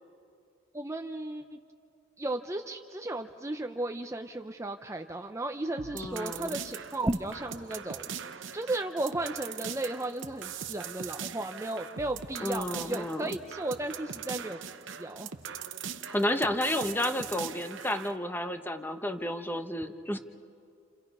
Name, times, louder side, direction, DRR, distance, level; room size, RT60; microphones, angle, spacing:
voice 1, 0.7-1.6 2.2-8.1 8.5-14.6 15.0-15.3, right 2 dB, 15° right, 6 dB, 0.6 m, -34 dB
sound 1, 5.8-18.2, right 7 dB, 65° right, 0.9 m, -41 dB
voice 2, 5.9-6.6 12.4-13.4 16.1-20.2, left 1 dB, 10° left, 7 dB, 0.9 m, -31 dB
30.0 x 28.5 x 5.4 m, 2.5 s
head